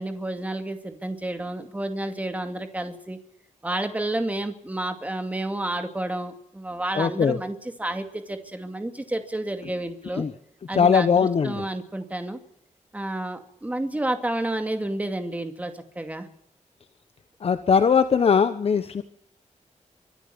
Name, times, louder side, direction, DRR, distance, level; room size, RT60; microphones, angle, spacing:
voice 1, 0.0-3.2 3.6-10.3 10.7-12.4 12.9-16.3, right 1 dB, 10° right, 7 dB, 2.4 m, -30 dB
voice 2, 7.0-7.4 10.2-10.3 10.7-11.6 17.4-19.0, left 6 dB, 50° left, 11 dB, 1.1 m, -20 dB
24.5 x 13.0 x 8.7 m, 0.75 s
wide cardioid pair, 180°, 13 cm